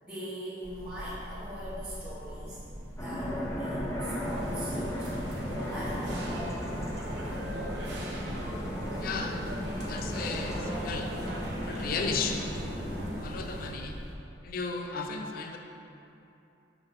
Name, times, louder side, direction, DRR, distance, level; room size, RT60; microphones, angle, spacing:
voice 1, 0.0-2.6 3.0-5.1 5.4-6.1 8.9-9.1, equal, 10° right, -14 dB, 1.2 m, -42 dB
sound 1, 0.6-14.1, equal, 40° right, 1.1 m, -43 dB
sound 2, 3.0-13.2, equal, 15° left, 0.7 m, -36 dB
sound 3, 4.2-13.7, equal, 70° right, 0.9 m, -39 dB
voice 2, 9.0-9.4 9.8-11.1 11.7-12.4 13.2-14.0 14.4-15.6, left 4 dB, 55° left, 3 dB, 0.4 m, -34 dB
5.8 x 3.5 x 5.4 m, 2.8 s
head